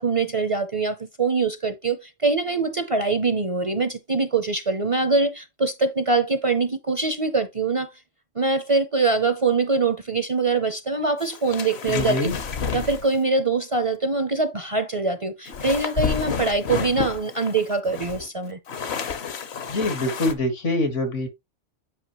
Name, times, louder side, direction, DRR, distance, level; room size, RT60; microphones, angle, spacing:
voice 1, 0.0-7.9 8.3-12.3 12.7-18.6, right 3 dB, 35° right, 0.6 m, -23 dB
sound 1, 11.2-13.2 15.5-20.3, left 6 dB, 65° left, 1.2 m, -30 dB
voice 2, 11.9-12.3 19.7-21.3, left 1 dB, 80° left, 2.1 m, -24 dB
8.6 x 5.3 x 3.0 m
omnidirectional pair, 1.2 m